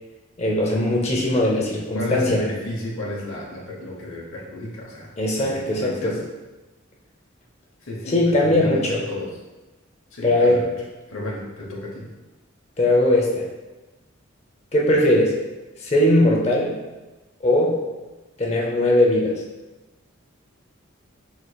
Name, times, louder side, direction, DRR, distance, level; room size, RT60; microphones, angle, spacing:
voice 1, 0.4-2.4 5.2-6.2 8.1-9.0 10.2-10.6 12.8-13.4 14.7-15.4 15.8-16.8 17.4-17.8 18.4-19.4, left 1 dB, 30° left, -2 dB, 0.6 m, -19 dB
voice 2, 1.9-5.1 5.4-6.2 7.8-9.3 10.1-10.7 11.1-12.1, left 1 dB, 80° left, -3 dB, 0.8 m, -32 dB
4.8 x 3.8 x 2.2 m, 1.1 s
head